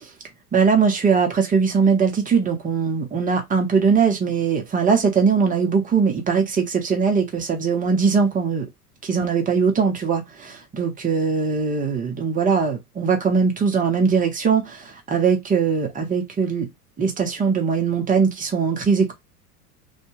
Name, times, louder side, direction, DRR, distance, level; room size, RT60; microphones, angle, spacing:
voice 1, 0.5-8.7 9.0-16.7 17.0-19.1, right 5 dB, 15° right, 0.8 m, -20 dB
2.5 x 2.2 x 3.0 m
figure-of-eight pair, 85°, 47 cm